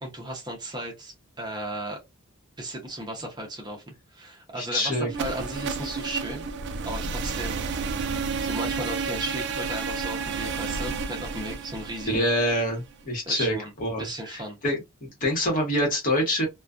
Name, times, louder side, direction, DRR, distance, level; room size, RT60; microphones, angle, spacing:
voice 1, 0.0-2.0 2.6-6.5 6.8-7.6 8.4-12.3 13.3-13.7 14.0-14.6, right 1 dB, 20° right, 0.7 m, -35 dB
voice 2, 4.6-5.1 12.1-16.5, equal, 40° left, 1.1 m, -26 dB
sound 1, 5.1-13.0, right 5 dB, 55° right, 0.3 m, -31 dB
2.3 x 2.2 x 2.4 m
head